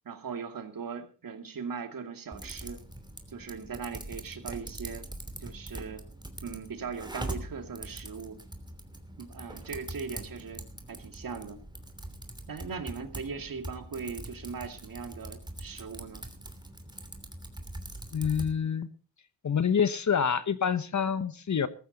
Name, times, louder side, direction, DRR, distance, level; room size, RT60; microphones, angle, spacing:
voice 1, 0.0-2.8 3.3-5.1 5.4-6.0 6.4-8.4 9.2-11.6 12.5-16.3, right 5 dB, 55° right, 7 dB, 2.5 m, -39 dB
Typing, 2.3-18.5, right 1 dB, 10° right, 3.0 m, -43 dB
voice 2, 18.1-18.9 19.4-21.7, left 7 dB, 45° left, 14 dB, 1.2 m, -27 dB
14.5 x 14.0 x 4.1 m, 0.38 s
cardioid pair, 65°, 41 cm